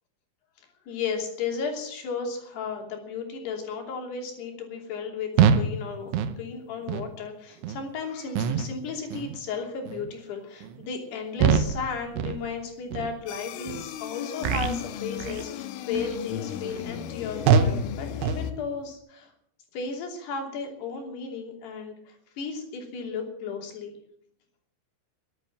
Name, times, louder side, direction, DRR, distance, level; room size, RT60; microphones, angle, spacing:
voice 1, 0.6-19.3 19.7-24.0, left 5 dB, 60° left, 2 dB, 4.8 m, -34 dB
sound 1, 5.4-5.7 6.1-6.4 6.9-7.1 7.6-7.8 8.4-8.7 9.1-9.4 9.9-10.1 10.6-10.8 11.4-11.8 12.2-12.5 12.9-13.1 13.7-13.8 14.4-14.8 15.2-15.5 16.0-16.2 16.7-16.8 17.5-17.8 18.2-18.5, right 6 dB, 80° right, 3.4 m, -24 dB
sound 2, 13.3-18.5, left 9 dB, 85° left, 3.5 m, -35 dB
22.0 x 8.7 x 7.3 m, 0.71 s
omnidirectional pair, 5.6 m